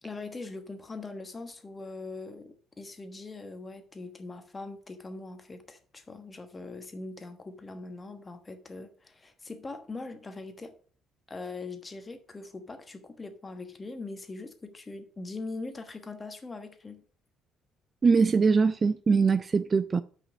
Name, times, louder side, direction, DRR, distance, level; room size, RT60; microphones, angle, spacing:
voice 1, 0.0-10.7 11.3-17.0, left 3 dB, 20° left, 1.2 m, -41 dB
voice 2, 18.0-20.0, right 5 dB, 30° right, 0.3 m, -22 dB
5.9 x 5.3 x 6.2 m
cardioid pair, 115°, 0 cm